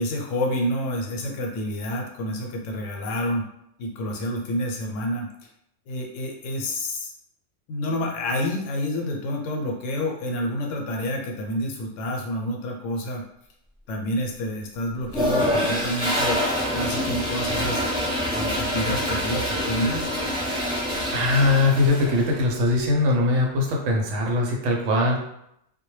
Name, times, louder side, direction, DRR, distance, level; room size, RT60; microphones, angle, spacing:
voice 1, 0.0-3.4 3.8-5.5 5.9-7.1 7.7-13.2 13.9-16.4 16.7-17.8 18.4-20.1, left 1 dB, 80° left, 1 dB, 0.9 m, -28 dB
Toilet flush, 15.1-22.3, equal, 5° right, 0.8 m, -26 dB
voice 2, 21.1-25.2, left 2 dB, 75° right, 0 dB, 0.9 m, -21 dB
2.2 x 2.1 x 3.0 m, 0.78 s
omnidirectional pair, 1.3 m